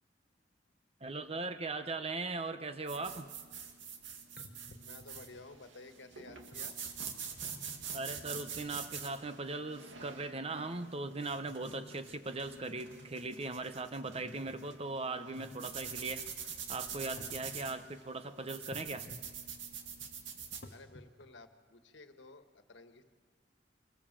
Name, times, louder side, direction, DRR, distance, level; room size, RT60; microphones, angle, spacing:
voice 1, 1.0-3.3 7.9-16.2 16.7-19.1, right 3 dB, 35° right, 10 dB, 1.0 m, -39 dB
sound 1, 2.9-20.7, right 7 dB, 90° right, 2.1 m, -45 dB
sound 2, 3.9-4.0 4.4-5.6 6.5-6.6 7.4-8.1 8.7-8.8 9.1-9.2 9.5-9.8 10.3-12.1 12.5-13.2 14.0-14.6 15.2-16.0 17.0-17.7 18.7-19.3 19.6-21.4, left 1 dB, 55° left, 1.3 m, -54 dB
voice 2, 4.8-6.8 20.7-23.0, left 3 dB, 75° left, 8 dB, 1.5 m, -53 dB
25.5 x 20.0 x 7.5 m, 1.5 s
head